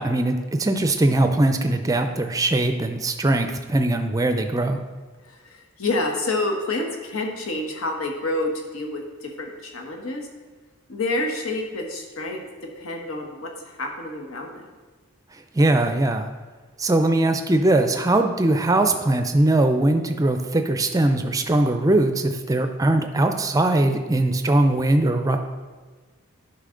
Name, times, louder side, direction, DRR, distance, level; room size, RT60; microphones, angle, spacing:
voice 1, 0.0-4.8 15.5-16.3 16.8-25.4, right 2 dB, 15° right, 7 dB, 0.4 m, -21 dB
voice 2, 5.3-10.3 10.9-12.4 12.8-14.6, left 2 dB, 80° left, 2 dB, 1.2 m, -28 dB
10.0 x 5.6 x 3.8 m, 1.4 s
head